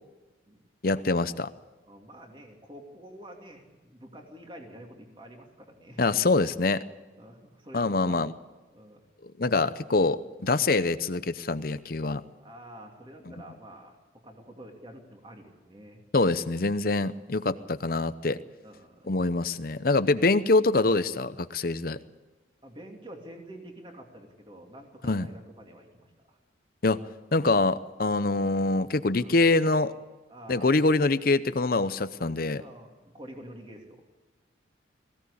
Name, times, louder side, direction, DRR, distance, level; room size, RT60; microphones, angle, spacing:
voice 1, 0.8-1.5 6.0-6.8 7.7-8.3 9.4-12.2 16.1-18.4 19.1-22.0 25.0-25.3 26.8-27.0 27.3-29.9 30.5-32.6, left 3 dB, 50° left, 13 dB, 0.7 m, -25 dB
voice 2, 1.9-6.1 7.2-8.3 8.7-9.1 12.3-14.0 14.2-16.0 17.2-17.9 18.6-19.1 22.6-26.4 29.1-29.4 30.3-30.8 32.5-34.0, right 1 dB, 25° right, 2 dB, 2.8 m, -48 dB
21.0 x 16.5 x 8.6 m, 1.2 s
head